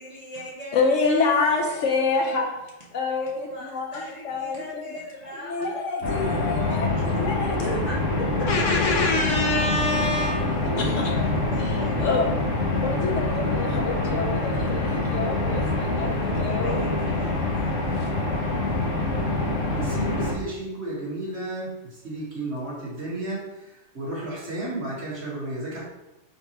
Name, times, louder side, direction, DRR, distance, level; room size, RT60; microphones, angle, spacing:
voice 1, 0.0-1.4 1.7-2.4 3.0-7.0 7.8-8.0 8.4-8.5 10.1-12.1 15.9-17.4, left 1 dB, 65° right, -7 dB, 0.4 m, -39 dB
voice 2, 0.7-2.5 2.9-5.0 5.4-7.8 8.5-11.1 11.6-12.3 12.6-16.8 18.0-18.1, left 3 dB, 75° left, 1 dB, 0.7 m, -27 dB
sound 1, 6.0-20.3, left 2 dB, 50° left, 1.2 m, -25 dB
voice 3, 19.7-25.8, right 2 dB, 40° right, -6 dB, 1.6 m, -33 dB
4.3 x 4.0 x 2.9 m, 0.98 s
omnidirectional pair, 1.8 m